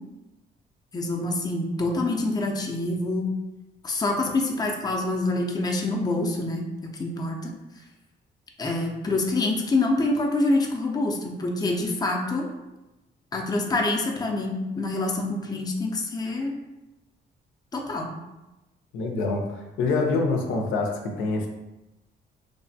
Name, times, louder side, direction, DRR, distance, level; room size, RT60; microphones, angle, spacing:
voice 1, 0.9-3.3 3.8-6.7 7.0-7.5 8.6-12.5 13.3-16.6 17.7-18.1, left 2 dB, 20° left, 1 dB, 0.5 m, -26 dB
voice 2, 18.9-20.9 21.2-21.5, left 3 dB, 85° left, 1 dB, 0.5 m, -25 dB
3.2 x 2.1 x 2.6 m, 1.0 s
cardioid pair, 90°, 20 cm